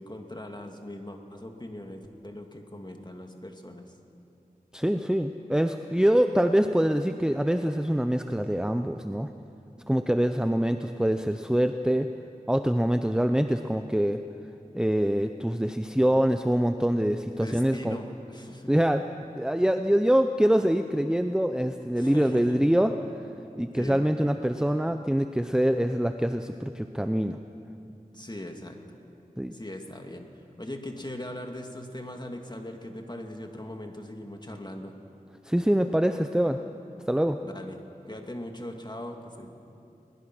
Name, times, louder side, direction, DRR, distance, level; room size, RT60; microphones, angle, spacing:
voice 1, 0.0-3.9 17.3-18.7 22.0-22.9 23.7-24.0 24.6-24.7 27.8-28.8 29.5-30.3 30.6-34.9 37.4-39.5, left 1 dB, 30° left, 3 dB, 2.2 m, -40 dB
voice 2, 4.7-9.3 9.9-12.1 12.5-14.2 14.7-18.0 18.7-19.0 19.3-22.9 23.6-27.4 29.4-29.5 35.4-36.6 37.1-37.4, equal, 5° right, 7 dB, 0.7 m, -24 dB
21.0 x 21.0 x 6.1 m, 2.7 s
wide cardioid pair, 40°, 15 cm